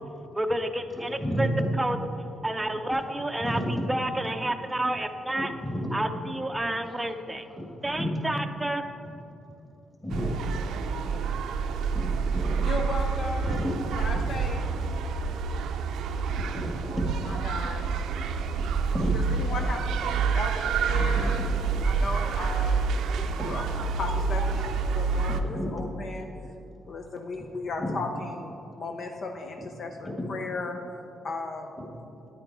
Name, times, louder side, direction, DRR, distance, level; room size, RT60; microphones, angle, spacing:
voice 1, 0.3-1.5 1.8-2.0 2.4-5.5 5.9-7.5 7.8-8.8, right 1 dB, 10° right, 6 dB, 0.6 m, -30 dB
voice 2, 0.9-1.5 3.4-3.7 5.6-5.9 7.5-8.1 9.4-9.5 10.0-10.3 11.9-12.7 13.4-13.7 15.2-15.3 16.4-17.1 18.6-19.1 21.0-21.3 21.8-21.9 23.4-23.5 25.3-25.7 27.8-27.9 30.0-30.3, equal, 15° left, -1 dB, 2.0 m, -32 dB
sound 1, 10.1-25.4, right 5 dB, 80° right, 0.5 m, -28 dB
voice 3, 12.7-13.7 14.0-14.6 17.3-17.9 19.1-21.4 21.8-22.9 23.1-26.3 26.8-30.8 31.2-31.7, left 3 dB, 55° left, 4 dB, 0.7 m, -36 dB
9.6 x 8.9 x 4.7 m, 2.8 s
cardioid pair, 90°, 0 cm